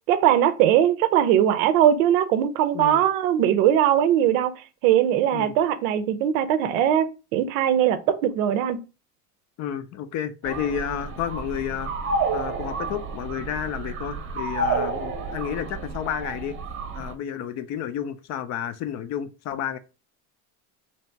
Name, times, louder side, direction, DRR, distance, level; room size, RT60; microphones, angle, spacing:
voice 1, 0.1-4.5 4.8-8.8, right 10 dB, 85° right, 0.6 m, -20 dB
voice 2, 9.6-11.9 12.3-16.6 16.9-19.8, left 9 dB, 45° left, 0.5 m, -31 dB
sound 1, 10.4-17.1, right 3 dB, 30° right, 0.7 m, -30 dB
2.9 x 2.7 x 4.4 m
cardioid pair, 135°, 39 cm